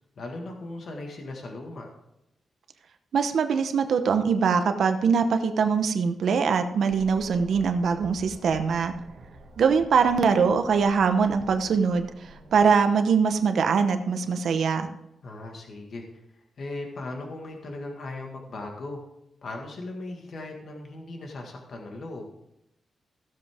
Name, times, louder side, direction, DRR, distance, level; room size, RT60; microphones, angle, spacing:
voice 1, 0.2-1.9 15.2-16.2 16.6-19.0 19.4-22.3, left 2 dB, 50° left, 2 dB, 1.7 m, -38 dB
voice 2, 3.1-8.9 9.6-14.9, right 5 dB, 60° right, 8 dB, 0.9 m, -23 dB
sound 1, 6.9-12.7, right 1 dB, 35° right, 2.2 m, -48 dB
15.5 x 7.5 x 3.6 m, 0.86 s
wide cardioid pair, 175°, 0 cm